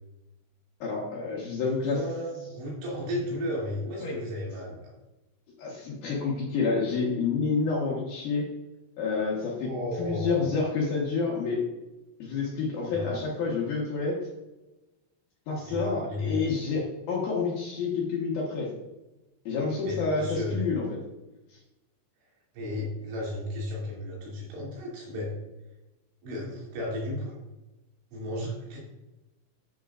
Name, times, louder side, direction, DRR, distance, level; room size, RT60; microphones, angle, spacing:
voice 1, 0.8-2.0 4.0-4.2 5.6-8.5 9.0-9.7 10.0-11.6 12.2-14.3 15.5-18.7 19.5-21.0, left 4 dB, 65° left, -3 dB, 2.6 m, -29 dB
voice 2, 1.7-4.9 9.6-10.5 12.9-13.2 15.7-16.4 19.8-20.6 22.5-25.3 26.2-27.3 28.1-28.8, left 1 dB, 70° right, -5 dB, 4.9 m, -34 dB
11.0 x 7.5 x 2.5 m, 1.0 s
omnidirectional pair, 5.6 m